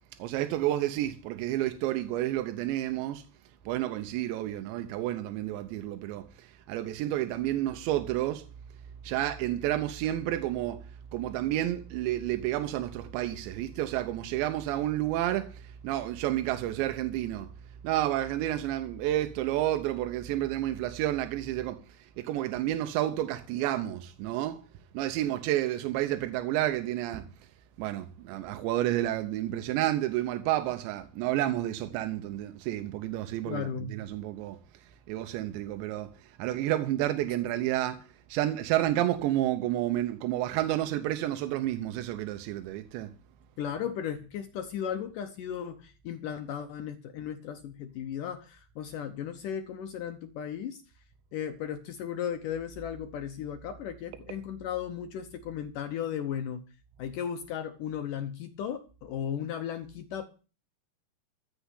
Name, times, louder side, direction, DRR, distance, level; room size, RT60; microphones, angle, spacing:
voice 1, 0.2-3.2 3.7-8.5 9.0-10.9 11.1-17.5 17.8-24.6 24.9-27.3 27.8-34.6 35.1-43.1, right 13 dB, 85° right, 3.1 m, -30 dB
voice 2, 33.5-33.9 43.6-50.8 51.3-56.6 57.0-60.2, left 9 dB, 80° left, 1.9 m, -36 dB
14.5 x 6.9 x 8.2 m
omnidirectional pair, 5.0 m